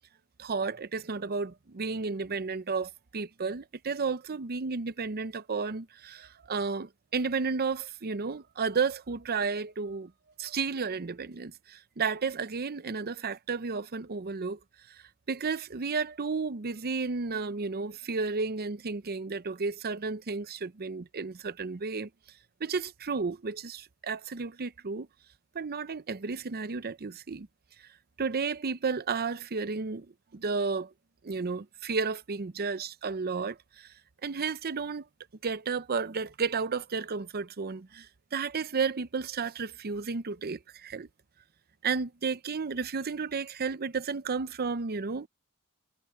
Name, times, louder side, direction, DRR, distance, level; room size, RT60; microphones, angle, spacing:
voice 1, 0.4-10.1 10.4-14.6 14.9-22.1 22.6-25.1 25.5-27.5 27.8-27.9 28.2-30.1 30.3-30.9 31.2-33.9 34.2-35.1 35.4-41.1 41.8-45.3, right 4 dB, 45° right, 0.6 m, -32 dB
head